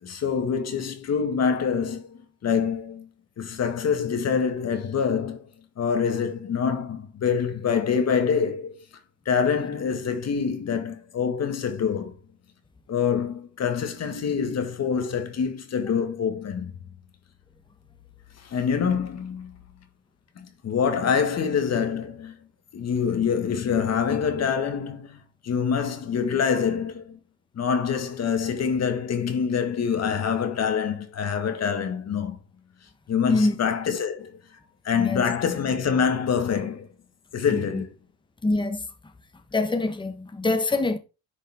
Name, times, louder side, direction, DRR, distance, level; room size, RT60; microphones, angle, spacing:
voice 1, 0.0-3.1 3.4-5.5 5.8-8.8 9.3-12.1 12.9-16.7 18.4-19.6 20.4-22.3 22.7-27.2 27.6-32.4 33.1-34.4 34.8-36.9 37.3-37.9, left 6 dB, 60° left, 1.9 m, -25 dB
voice 2, 37.5-37.8 38.4-38.8 39.5-41.0, left 2 dB, 15° left, 1.1 m, -25 dB
10.0 x 5.4 x 3.6 m
cardioid pair, 90°, 30 cm